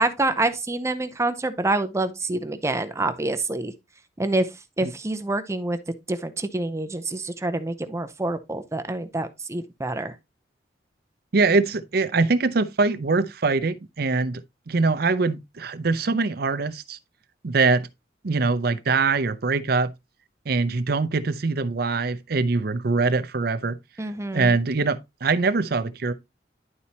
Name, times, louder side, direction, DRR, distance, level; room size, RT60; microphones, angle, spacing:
voice 1, 0.0-3.7 4.2-4.5 4.8-5.8 6.1-10.1 24.0-24.6, right 2 dB, 15° right, 0.6 m, -26 dB
voice 2, 11.3-14.4 14.7-17.0 17.4-17.9 18.2-19.9 20.5-23.8 24.3-26.1, right 3 dB, 60° right, 0.6 m, -23 dB
11.0 x 4.2 x 2.8 m
head